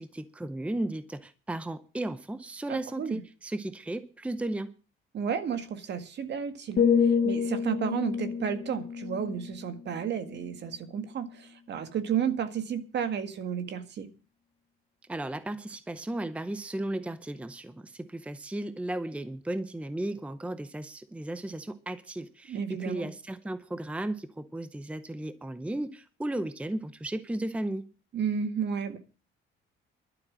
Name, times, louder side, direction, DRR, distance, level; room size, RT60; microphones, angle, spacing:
voice 1, 0.0-4.7 15.1-27.9, right 1 dB, 5° right, 0.7 m, -35 dB
voice 2, 2.7-3.2 5.1-14.1 22.5-23.1 28.1-29.0, right 7 dB, 55° right, 1.9 m, -32 dB
sound 1, 6.8-10.7 11.1-11.4, left 6 dB, 50° left, 1.0 m, -29 dB
12.0 x 7.8 x 8.8 m
cardioid pair, 135°, 21 cm